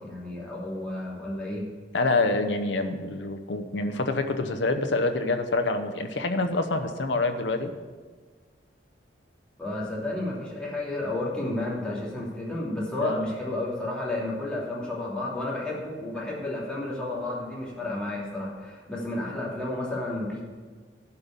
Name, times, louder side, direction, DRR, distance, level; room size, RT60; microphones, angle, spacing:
voice 1, 0.0-1.6 9.6-20.4, left 2 dB, 5° left, -6 dB, 2.8 m, -32 dB
voice 2, 1.9-7.7 13.0-13.3, left 2 dB, 80° left, 7 dB, 0.8 m, -26 dB
11.5 x 5.4 x 8.2 m, 1.5 s
head